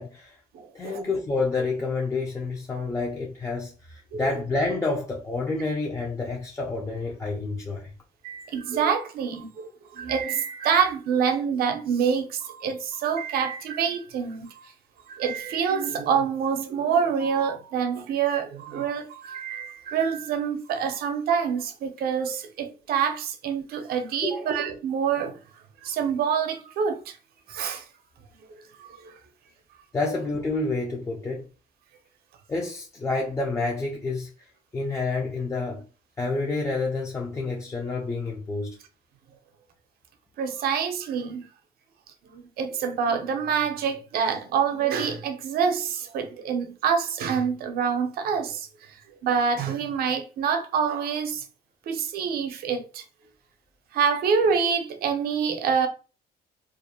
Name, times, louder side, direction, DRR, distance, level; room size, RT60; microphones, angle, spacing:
voice 1, 0.0-0.4 0.7-7.9 24.2-24.5 29.9-31.5 32.5-34.5 34.7-35.8 36.2-38.8, left 3 dB, 15° left, 0.4 m, -29 dB
voice 2, 0.5-1.0 4.1-4.3 8.2-14.7 15.1-25.4 25.8-27.2 27.5-27.8 28.8-29.1 40.4-41.5 42.2-49.0 49.2-51.4 51.9-53.0 53.9-55.9, right 6 dB, 65° right, 0.6 m, -26 dB
2.4 x 2.0 x 2.7 m
cardioid pair, 110°, 17 cm